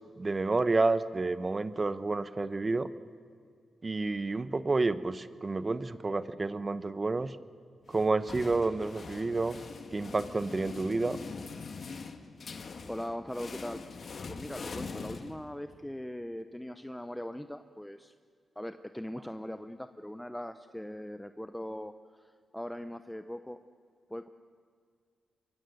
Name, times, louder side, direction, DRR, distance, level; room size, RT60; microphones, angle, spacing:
voice 1, 0.2-2.9 3.8-7.3 7.9-9.6 9.9-11.2, right 3 dB, 30° right, 13 dB, 1.0 m, -29 dB
sound 1, 7.9-15.8, left 4 dB, 55° left, 1.8 m, -43 dB
voice 2, 12.9-13.8 14.3-18.1 18.6-23.6 24.1-24.3, left 1 dB, 5° left, 9 dB, 0.8 m, -40 dB
24.0 x 24.0 x 7.9 m, 2.2 s
cardioid pair, 85°, 0 cm